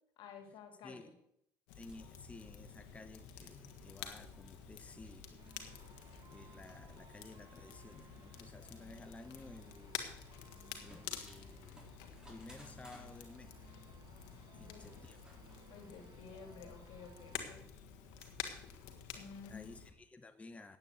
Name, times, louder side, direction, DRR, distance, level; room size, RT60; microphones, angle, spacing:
voice 1, 0.2-1.1 14.5-14.9 15.7-17.6 19.1-19.7, left 6 dB, 70° left, 5 dB, 2.7 m, -52 dB
Crackle, 1.7-19.9, left 8 dB, 90° left, 1.5 m, -50 dB
voice 2, 1.7-5.6 6.3-10.1 10.8-11.8 12.3-13.6 14.5-15.2 19.5-20.8, left 3 dB, 15° left, 9 dB, 0.8 m, -54 dB
sound 1, 1.8-18.9, equal, 10° right, 4.1 m, -66 dB
sound 2, 5.4-17.5, right 6 dB, 45° right, 1.2 m, -63 dB
9.0 x 8.6 x 7.9 m, 0.75 s
supercardioid pair, 95°, 9 cm